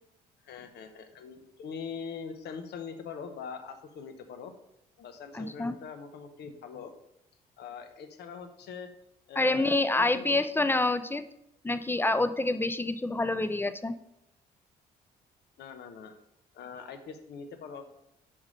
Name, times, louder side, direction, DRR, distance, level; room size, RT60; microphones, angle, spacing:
voice 1, 0.4-4.5 5.0-6.9 7.6-8.9 9.3-10.4 15.6-16.1 16.5-17.8, left 6 dB, 55° left, 8 dB, 0.8 m, -42 dB
voice 2, 5.3-5.8 9.4-11.2 11.6-13.9, left 2 dB, 10° left, 11 dB, 0.4 m, -27 dB
5.4 x 4.9 x 5.3 m, 0.84 s
hypercardioid pair, 50°, 20 cm